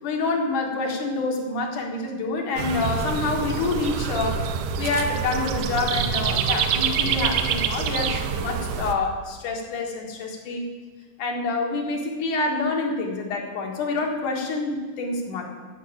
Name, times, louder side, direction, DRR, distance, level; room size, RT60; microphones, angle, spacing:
voice 1, 0.0-4.5 4.7-10.6 11.2-15.5, left 3 dB, 70° left, 1 dB, 3.1 m, -27 dB
sound 1, 2.6-8.9, right 7 dB, 75° right, 2.2 m, -26 dB
13.0 x 5.9 x 8.8 m, 1.5 s
omnidirectional pair, 3.9 m